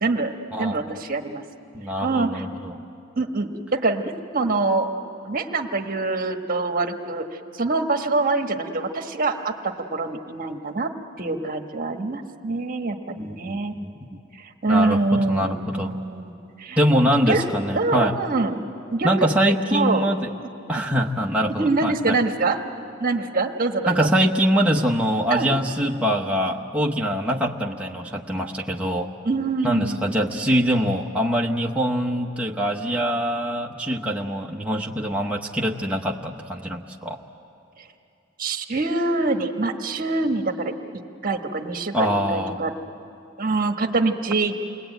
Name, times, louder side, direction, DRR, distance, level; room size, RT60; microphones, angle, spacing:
voice 1, 0.0-0.3 0.6-1.4 2.0-2.4 3.2-4.9 5.2-7.3 7.5-10.9 11.2-13.7 14.3-16.2 16.6-16.8 17.3-17.4 17.7-18.6 18.9-19.1 19.7-20.0 21.6-22.6 23.0-24.1 25.3-25.5 29.2-30.1 38.4-40.7 41.2-42.7 43.4-44.5, right 3 dB, 45° right, 5 dB, 1.3 m, -24 dB
voice 2, 0.5-1.0 1.7-2.8 13.2-13.9 14.7-15.0 15.3-15.9 16.8-18.2 19.0-20.3 20.7-22.2 23.9-29.1 29.6-37.2 41.9-42.7, equal, 5° right, -1 dB, 0.9 m, -23 dB
28.5 x 21.0 x 9.1 m, 2.7 s
head